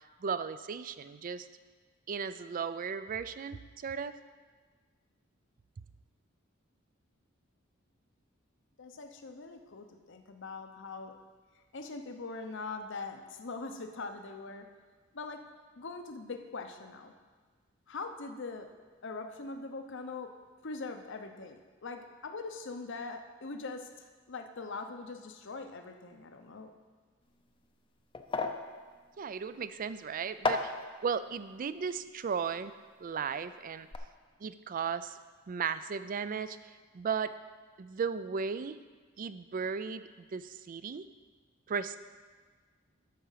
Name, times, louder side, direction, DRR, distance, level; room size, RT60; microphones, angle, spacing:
voice 1, 0.2-1.5 2.1-4.1 29.2-30.7 31.0-32.7 33.0-33.9 34.4-35.2 35.5-37.3 37.8-38.8 39.2-41.0 41.7-42.0, right 6 dB, 40° right, 13 dB, 0.4 m, -35 dB
voice 2, 8.8-11.1 11.5-14.7 15.1-15.4 15.8-17.1 17.9-18.7 19.0-20.3 20.6-26.7, left 3 dB, 65° left, 6 dB, 0.8 m, -42 dB
sound 1, 27.2-33.4 33.7-34.0, left 3 dB, 25° left, 0.6 m, -38 dB
12.5 x 5.0 x 5.7 m, 1.5 s
head